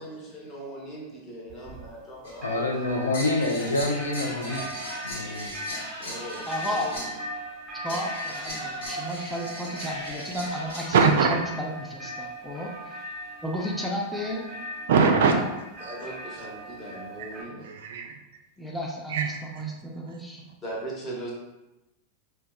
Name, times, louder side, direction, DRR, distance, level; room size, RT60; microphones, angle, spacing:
voice 1, 0.0-3.1 6.0-7.0 15.8-17.7 20.6-21.3, right 1 dB, 25° left, -4 dB, 1.0 m, -39 dB
Old church bell Cyprus, 1.5-2.1 2.4-17.4, right 1 dB, 15° right, 1.0 m, -40 dB
sound 1, 2.2-2.4 3.1-7.4 7.9-11.1, equal, 55° left, 1.3 m, -37 dB
voice 2, 2.4-4.6 5.0-5.5, left 2 dB, 75° left, 1 dB, 0.4 m, -27 dB
voice 3, 6.5-7.0 7.7-11.0 11.3-13.0 13.4-14.5 15.2-15.4 18.6-20.4, equal, ahead, -2 dB, 0.5 m, -33 dB
voice 4, 10.9-11.3 14.9-15.3 15.9-16.0 16.4-16.5 16.9-18.2 19.1-20.5, right 5 dB, 55° right, 4 dB, 0.3 m, -24 dB
4.3 x 2.2 x 2.2 m, 1.0 s
figure-of-eight pair, 90°, 0 cm